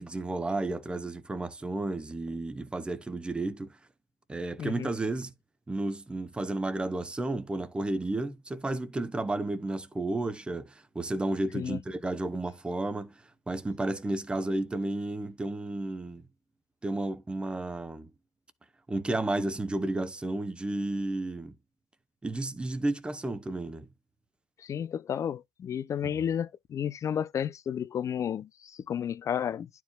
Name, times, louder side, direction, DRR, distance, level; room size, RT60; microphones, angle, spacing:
voice 1, 0.0-3.8 4.3-5.3 5.7-16.2 16.8-18.1 18.9-21.5 22.2-23.9, right 2 dB, 10° right, 0.9 m, -32 dB
voice 2, 4.6-4.9 11.5-11.8 24.6-29.7, left 8 dB, 30° left, 0.5 m, -32 dB
11.5 x 4.6 x 2.3 m
cardioid pair, 135°, 10 cm